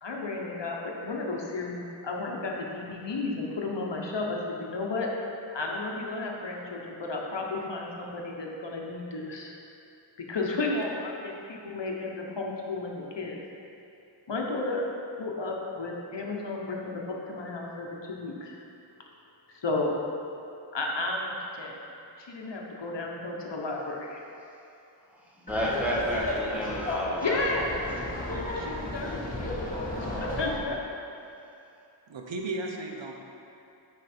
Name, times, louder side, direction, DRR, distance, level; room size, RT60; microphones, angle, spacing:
voice 1, 0.0-5.1 5.5-9.5 10.2-13.4 14.3-14.9 15.2-18.5 19.5-19.9 20.7-21.8 22.2-24.2 27.2-27.7 28.5-29.6 30.0-30.8, left 3 dB, 65° left, -1 dB, 1.1 m, -33 dB
voice 2, 25.4-27.4 27.7-28.2, equal, 5° right, -6 dB, 1.6 m, -31 dB
Laughter, 25.5-30.6, left 1 dB, 20° left, 1.5 m, -33 dB
voice 3, 32.1-33.1, right 2 dB, 70° right, 1 dB, 0.9 m, -34 dB
9.8 x 4.6 x 4.4 m, 2.7 s
wide cardioid pair, 70°, 46 cm